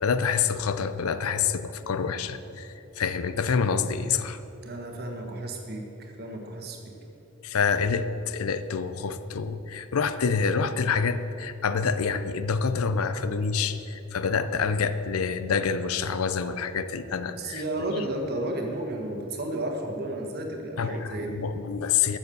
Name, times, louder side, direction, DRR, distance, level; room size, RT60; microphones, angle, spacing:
voice 1, 0.0-4.4 7.4-17.6 20.8-22.2, left 6 dB, 85° left, 12 dB, 0.5 m, -27 dB
voice 2, 4.6-6.9 17.3-21.4, right 1 dB, 45° right, 2 dB, 1.5 m, -33 dB
13.0 x 7.0 x 6.9 m, 3.0 s
head